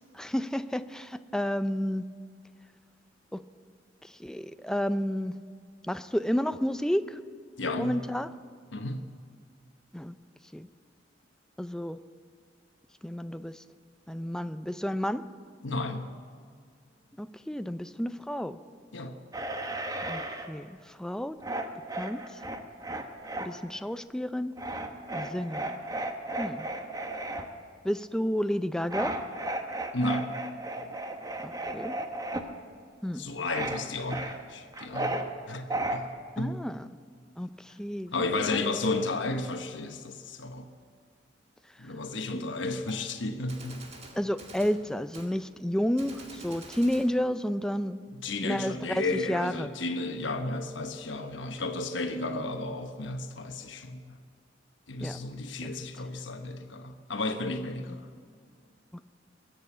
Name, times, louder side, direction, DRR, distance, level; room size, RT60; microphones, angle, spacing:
voice 1, 0.1-2.1 3.3-3.4 4.0-5.3 5.9-7.2 7.8-8.3 9.9-10.2 10.5-10.7 11.6-12.0 13.0-13.6 14.1-15.2 17.2-18.6 20.1-20.2 20.5-21.4 21.9-22.4 23.4-24.5 25.1-25.7 26.4-26.7 27.8-29.1 31.4-32.0 33.0-33.3 36.4-36.9 37.4-38.6 41.8-41.9 42.3-42.5 44.1-48.0 48.4-49.7 55.0-55.2 57.9-58.0 58.9-59.1, equal, 5° left, 11 dB, 0.4 m, -31 dB
voice 2, 7.6-8.0 8.7-9.0 15.6-16.1 18.9-19.2 29.9-30.4 33.1-36.1 36.4-36.6 38.1-40.7 41.8-43.8 48.2-54.2 54.9-58.1, left 2 dB, 85° left, 6 dB, 1.1 m, -33 dB
sound 1, 19.3-20.5 21.4-23.5 24.6-27.4 28.9-32.4 33.4-33.8 34.1-35.3 35.7-36.0, right 1 dB, 20° right, 1.0 m, -34 dB
Gunshot gunfire, 42.9-43.0 43.5-44.8 45.1-45.3 46.0-47.1, right 3 dB, 35° right, 2.1 m, -47 dB
21.5 x 7.8 x 8.4 m, 2.2 s
head